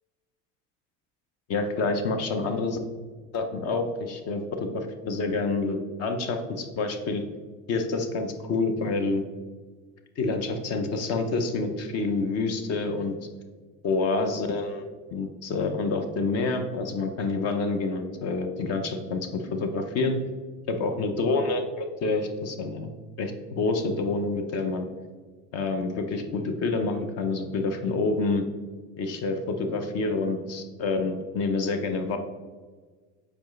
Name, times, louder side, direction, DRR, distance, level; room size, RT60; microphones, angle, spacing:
voice 1, 1.5-2.8 3.3-7.2 7.7-9.2 10.2-13.1 13.8-20.2 20.7-22.9 23.2-24.9 25.5-28.4 29.0-32.2, left 3 dB, 50° left, 6 dB, 0.7 m, -28 dB
7.0 x 4.8 x 3.1 m, 1.4 s
cardioid pair, 160°, 33 cm